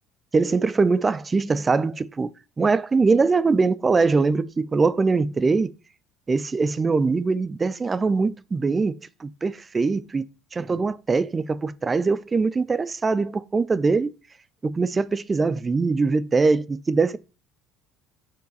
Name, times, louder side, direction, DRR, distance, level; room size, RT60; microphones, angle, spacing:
voice 1, 0.3-2.3 2.6-5.7 6.3-10.2 10.5-14.1 14.6-17.2, right 4 dB, 25° right, 0.3 m, -22 dB
4.6 x 3.0 x 3.9 m
figure-of-eight pair, 60°, 0 cm